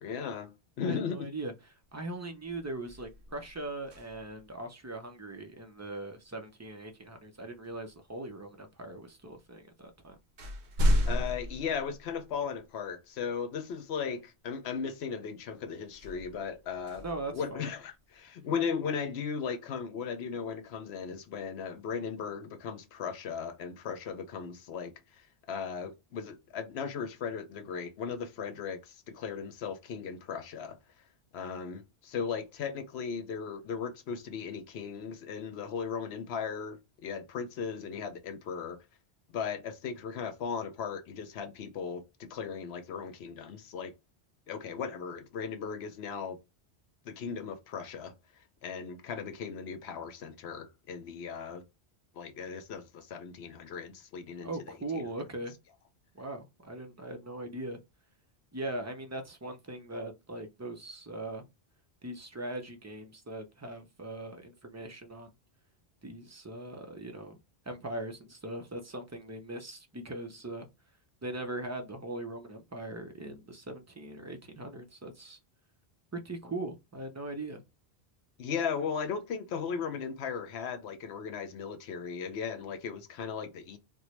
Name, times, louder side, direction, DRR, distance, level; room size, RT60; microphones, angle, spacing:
voice 1, 0.0-1.3 11.1-17.0 17.3-30.8 31.3-38.8 39.3-43.9 44.5-46.4 47.1-48.1 48.6-51.6 52.2-55.1 78.4-83.8, left 6 dB, 80° left, 0.9 m, -37 dB
voice 2, 0.8-10.2 17.0-17.7 54.4-55.5 56.1-57.8 58.5-61.5 62.0-65.3 66.0-67.4 67.7-70.7 71.2-75.4 76.1-77.6, right 2 dB, 30° right, 0.3 m, -40 dB
sound 1, 1.8-2.1 2.4-4.5 6.7-6.8 7.6-8.4 9.3-9.4 9.8-12.6 13.2-13.3 15.9-18.0, equal, 85° right, 1.1 m, -33 dB
4.2 x 2.0 x 3.0 m
omnidirectional pair, 1.1 m